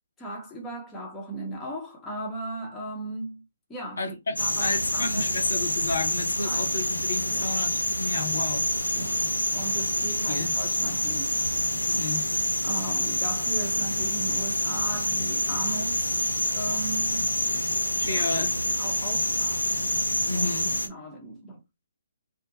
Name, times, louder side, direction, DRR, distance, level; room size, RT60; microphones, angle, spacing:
voice 1, 0.2-3.4 3.7-5.4 6.4-6.7 7.3-7.5 8.2-8.4 8.9-11.4 12.6-16.1 16.5-17.3 18.0-18.3 18.6-19.7 20.3-20.5 20.8-21.6, right 1 dB, 10° left, 0.9 m, -37 dB
voice 2, 4.0-8.7 10.3-10.5 11.9-12.3 18.0-18.5 20.3-20.7, left 3 dB, 65° left, 0.9 m, -31 dB
Emu Rockhole Night Atmos, 4.4-20.9, left 1 dB, 90° left, 0.6 m, -27 dB
2.6 x 2.2 x 4.0 m
figure-of-eight pair, 135°, 0 cm